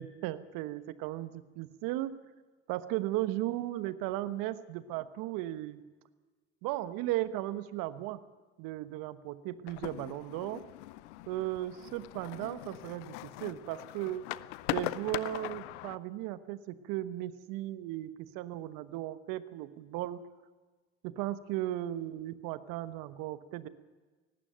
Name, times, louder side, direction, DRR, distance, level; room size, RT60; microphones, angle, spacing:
voice 1, 0.0-2.1 2.7-5.8 6.6-8.2 8.6-10.6 11.3-14.3 14.7-20.3 21.0-23.7, right 14 dB, 70° right, 14 dB, 1.2 m, -36 dB
sound 1, 9.7-16.0, left 18 dB, 80° left, 0.7 m, -40 dB
18.5 x 16.0 x 9.1 m, 1.3 s
hypercardioid pair, 55°, 35 cm